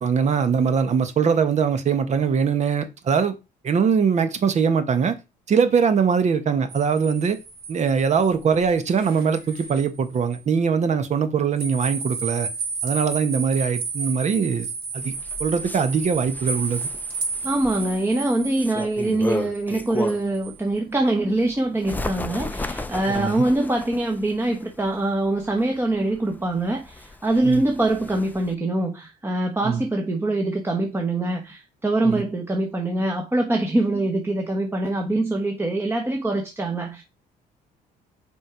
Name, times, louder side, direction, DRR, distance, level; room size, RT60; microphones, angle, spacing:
voice 1, 0.0-3.3 3.6-5.1 5.5-7.4 7.7-12.5 12.8-14.7 14.9-15.1 15.4-16.9 23.1-23.3 27.4-27.6 29.6-29.8 32.0-32.2, right 6 dB, 45° right, 1.3 m, -22 dB
sound 1, 6.7-9.9 10.3-10.4 11.6-20.6, right 4 dB, 65° right, 3.6 m, -33 dB
Bird, 15.0-20.4 20.9-28.5, left 2 dB, 10° left, 0.7 m, -35 dB
voice 2, 17.4-37.0, right 2 dB, 15° right, 1.3 m, -24 dB
6.1 x 4.8 x 5.1 m
cardioid pair, 110°, 17 cm